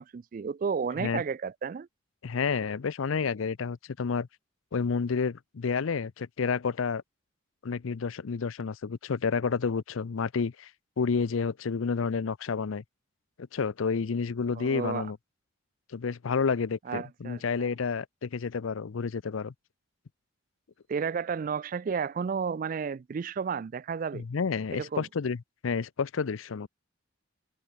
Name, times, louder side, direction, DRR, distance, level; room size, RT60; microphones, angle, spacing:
voice 1, 0.0-1.9 14.6-15.1 16.9-17.7 20.9-24.2 24.7-25.1, right 6 dB, 40° right, 0.3 m, -32 dB
voice 2, 2.2-4.3 4.7-7.0 7.6-10.7 11.0-12.8 13.5-15.2 15.9-19.5 24.1-26.7, left 5 dB, 80° left, 0.5 m, -30 dB
head